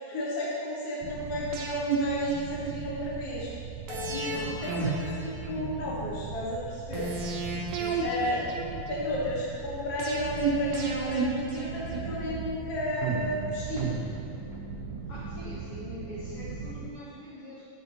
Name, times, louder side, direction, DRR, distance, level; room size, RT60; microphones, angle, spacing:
voice 1, 0.1-3.5 3.9-7.1 7.5-7.6 8.0-8.4 8.9-13.9, left 1 dB, 60° left, -6 dB, 0.9 m, -33 dB
sound 1, 1.0-16.9, right 5 dB, 90° right, 2.3 m, -39 dB
sound 2, 1.5-3.1 3.9-6.0 6.9-9.2 10.0-12.4 13.0-14.7 15.0-15.1, right 4 dB, 75° right, 1.9 m, -32 dB
voice 2, 4.3-4.9 7.8-8.1 15.1-17.7, left 2 dB, 80° left, -7 dB, 1.3 m, -43 dB
7.3 x 6.7 x 2.8 m, 2.6 s
omnidirectional pair, 3.9 m